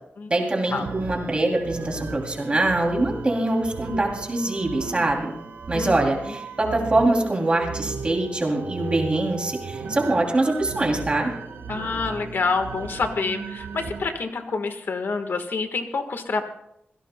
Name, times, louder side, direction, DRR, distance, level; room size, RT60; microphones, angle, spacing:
voice 1, 0.3-5.3 5.7-11.3, right 2 dB, 30° right, 1 dB, 2.8 m, -23 dB
sound 1, 0.6-14.1, right 4 dB, 80° right, 1.1 m, -36 dB
voice 2, 11.7-16.4, left 4 dB, 65° left, 7 dB, 1.4 m, -27 dB
25.0 x 16.5 x 2.2 m, 0.79 s
wide cardioid pair, 135°, 4 cm